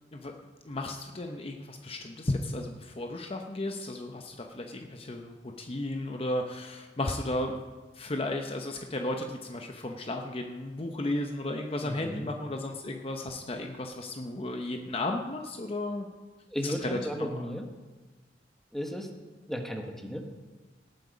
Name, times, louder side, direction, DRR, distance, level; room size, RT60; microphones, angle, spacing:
voice 1, 0.7-7.6 7.9-16.1 16.6-17.4, left 1 dB, 35° left, 3 dB, 0.8 m, -34 dB
voice 2, 11.8-12.3 16.5-17.7 18.7-19.1 19.5-20.2, equal, ahead, 3 dB, 1.3 m, -34 dB
18.5 x 7.9 x 5.1 m, 1.2 s
head